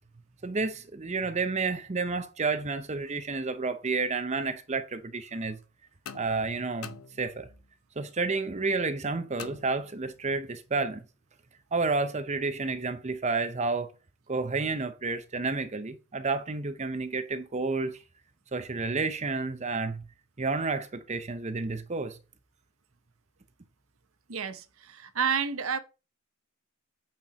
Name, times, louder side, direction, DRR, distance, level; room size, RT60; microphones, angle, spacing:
voice 1, 0.4-5.6 6.1-7.5 8.0-11.0 11.7-13.9 14.3-18.0 18.5-20.0 20.4-22.2, right 3 dB, 30° right, 0.7 m, -30 dB
sound 1, 6.0-7.7 9.4-10.3, left 7 dB, 75° left, 0.8 m, -46 dB
voice 2, 24.3-25.8, right 6 dB, 65° right, 1.0 m, -30 dB
8.7 x 4.5 x 6.1 m
head